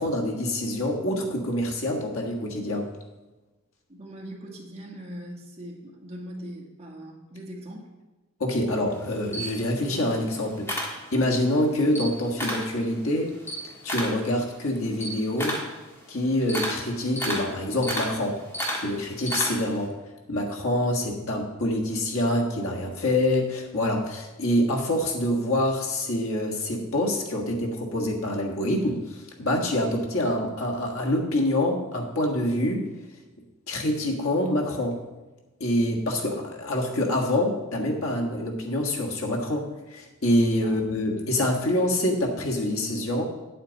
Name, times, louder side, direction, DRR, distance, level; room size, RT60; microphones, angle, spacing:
voice 1, 0.0-2.9 8.4-13.3 13.8-15.6 16.1-18.4 18.8-19.9 20.3-32.9 33.7-35.0 35.6-43.2, left 1 dB, 80° left, 0 dB, 1.6 m, -26 dB
voice 2, 3.9-7.9 40.6-40.7, equal, 30° right, -1 dB, 1.8 m, -40 dB
Camera, 8.9-11.5 11.8-12.7 13.1-19.8, equal, 10° left, 1.5 m, -32 dB
9.3 x 8.6 x 4.1 m, 1.1 s
head